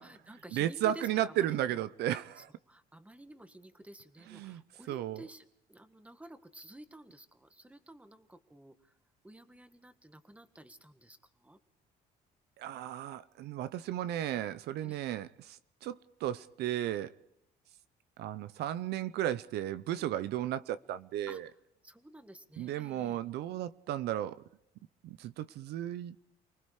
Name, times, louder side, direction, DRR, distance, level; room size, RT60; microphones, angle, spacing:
voice 1, 0.0-1.8 2.4-8.9 9.2-11.6 14.8-15.0 21.3-21.4 21.8-23.2, right 1 dB, 10° right, 1.6 m, -52 dB
voice 2, 0.5-2.5 4.3-4.6 4.9-5.2 12.6-17.1 18.2-21.5 22.6-24.4 25.0-26.2, right 12 dB, 75° right, 0.7 m, -34 dB
29.0 x 19.5 x 4.9 m
cardioid pair, 110°, 17 cm